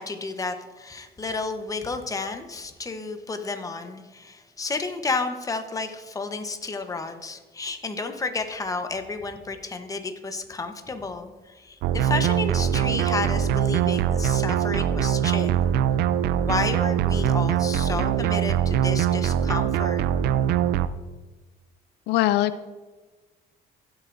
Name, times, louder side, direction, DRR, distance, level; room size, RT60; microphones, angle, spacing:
voice 1, 0.0-15.5 16.5-20.0, left 3 dB, 20° left, 7 dB, 0.9 m, -31 dB
sound 1, 11.8-20.9, right 9 dB, 75° right, 0.4 m, -23 dB
voice 2, 22.1-22.6, left 14 dB, 85° left, 14 dB, 0.4 m, -22 dB
15.5 x 8.0 x 2.6 m, 1.3 s
cardioid pair, 110°, 17 cm